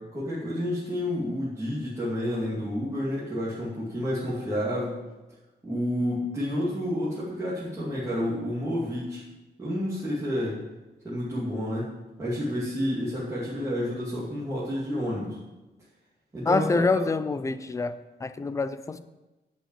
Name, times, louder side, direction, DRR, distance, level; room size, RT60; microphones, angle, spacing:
voice 1, 0.0-4.9 5.6-9.2 9.6-10.6 11.0-11.9 12.2-15.4 16.3-17.1, equal, 15° right, -10 dB, 2.5 m, -30 dB
voice 2, 16.5-17.9 18.2-19.0, left 4 dB, 15° left, 13 dB, 0.4 m, -26 dB
11.0 x 5.5 x 7.6 m, 1.1 s
wide cardioid pair, 175°, 18 cm